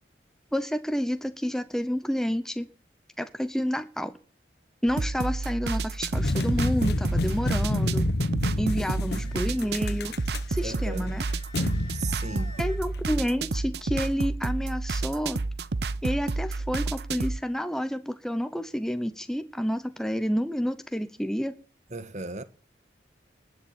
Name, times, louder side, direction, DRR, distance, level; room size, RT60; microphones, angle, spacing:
voice 1, 0.5-2.7 3.2-4.1 4.8-8.0 8.6-10.1 10.5-11.2 11.6-11.7 12.6-15.4 16.0-21.5, equal, 5° left, 0.7 m, -29 dB
sound 1, 4.9-17.4, right 3 dB, 65° right, 0.7 m, -30 dB
sound 2, 6.1-13.0, left 2 dB, 65° left, 1.0 m, -29 dB
voice 2, 8.7-9.3 10.6-11.2 11.9-12.5 21.9-22.4, right 3 dB, 40° right, 1.3 m, -37 dB
Wind instrument woodwind instrument, 9.2-12.8, left 1 dB, 25° left, 3.4 m, -51 dB
20.0 x 7.0 x 8.8 m
head